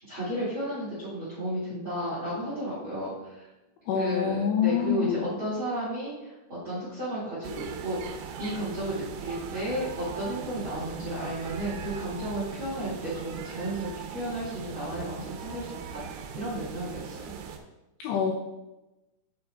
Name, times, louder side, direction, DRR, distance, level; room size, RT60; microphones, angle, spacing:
voice 1, 0.1-3.4 3.9-17.3, right 1 dB, 50° right, -9 dB, 1.5 m, -33 dB
voice 2, 3.9-5.2 18.0-18.3, left 8 dB, 85° left, 0 dB, 2.5 m, -26 dB
sound 1, 7.4-17.6, right 7 dB, 80° right, 3.1 m, -40 dB
8.9 x 6.9 x 2.3 m, 1.0 s
omnidirectional pair, 5.7 m